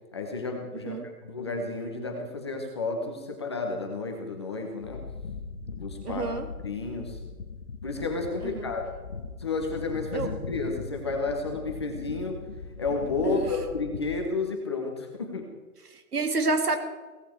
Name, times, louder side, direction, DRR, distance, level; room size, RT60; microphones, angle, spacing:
voice 1, 0.1-5.0 5.7-6.2 6.6-7.2 7.8-8.8 9.4-12.4 12.8-15.5, left 3 dB, 20° left, 2 dB, 1.1 m, -31 dB
sound 1, 4.8-14.2, left 4 dB, 40° left, 1.3 m, -40 dB
voice 2, 6.0-6.5 8.4-8.7 10.1-10.3 13.2-13.4 15.9-16.8, right 3 dB, 80° right, 6 dB, 2.7 m, -28 dB
17.5 x 15.5 x 4.6 m, 1.3 s
hypercardioid pair, 180°, 46 cm